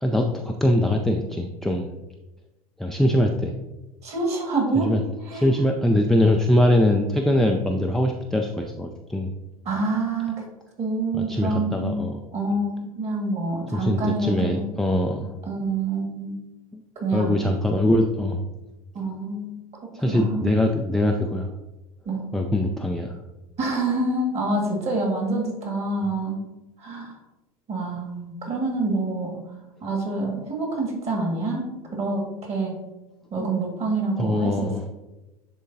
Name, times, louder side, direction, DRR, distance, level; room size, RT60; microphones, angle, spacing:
voice 1, 0.0-1.9 2.8-3.5 4.8-5.0 5.3-9.3 11.1-12.2 13.7-15.3 16.7-16.8 17.1-18.4 19.9-21.5 22.3-23.1 33.4-33.5 34.2-34.8, left 1 dB, ahead, 1 dB, 0.4 m, -22 dB
voice 2, 4.0-4.9 5.3-5.5 9.7-10.4 10.8-12.1 12.3-14.7 15.4-16.3 17.0-17.4 18.9-19.5 20.1-20.5 22.1-22.3 23.6-26.4 26.8-27.2 27.7-29.4 29.8-32.7 33.3-34.9, right 2 dB, 35° right, 1 dB, 1.9 m, -27 dB
10.0 x 3.6 x 2.7 m, 1.0 s
figure-of-eight pair, 80°, 19 cm